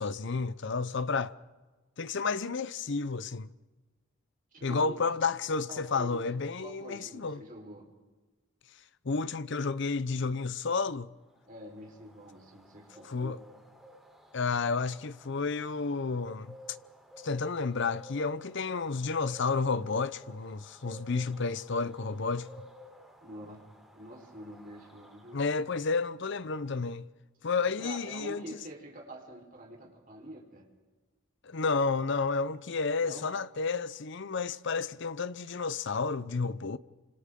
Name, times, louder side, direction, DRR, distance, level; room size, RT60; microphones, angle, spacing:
voice 1, 0.0-1.3 2.0-3.5 4.6-7.4 9.0-11.1 13.0-13.4 14.3-16.6 17.2-22.5 25.3-27.1 27.4-28.4 31.4-36.8, left 4 dB, 60° left, 0.7 m, -31 dB
voice 2, 4.5-5.1 5.7-6.3 6.6-7.9 11.5-13.4 23.2-23.6 23.9-25.4 27.6-30.7 33.0-33.3, right 1 dB, 40° right, 4.1 m, -46 dB
sound 1, 11.3-25.9, left 1 dB, ahead, 3.4 m, -54 dB
29.0 x 26.0 x 3.7 m
head